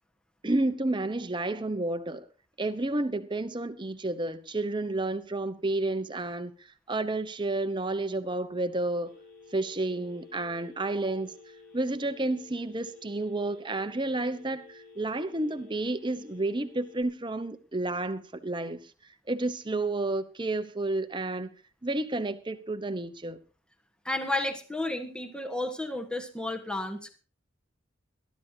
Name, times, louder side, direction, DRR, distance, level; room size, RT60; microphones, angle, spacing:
voice 1, 0.4-2.3 2.6-6.5 6.9-9.1 9.5-11.3 11.7-18.8 19.3-21.5 21.8-23.4, right 2 dB, 25° right, 1.0 m, -30 dB
Telephone, 9.0-17.0, left 3 dB, 60° left, 5.9 m, -52 dB
voice 2, 24.0-27.2, left 2 dB, 5° left, 1.4 m, -32 dB
22.0 x 12.5 x 2.8 m
head